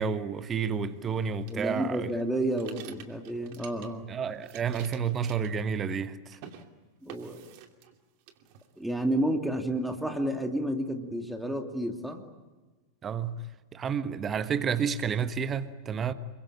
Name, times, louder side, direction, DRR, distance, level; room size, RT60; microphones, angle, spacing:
voice 1, 0.0-2.1 4.1-6.4 13.0-13.5 13.7-16.1, right 6 dB, 25° right, 1.3 m, -30 dB
voice 2, 1.5-4.0 7.0-7.4 8.8-12.2, right 1 dB, 5° right, 2.6 m, -30 dB
sound 1, 1.5-4.1 4.4-6.1 6.3-6.7 7.1-8.0 8.3-9.0, right 9 dB, 45° right, 2.7 m, -49 dB
28.0 x 24.0 x 8.8 m
figure-of-eight pair, 90°, 0 cm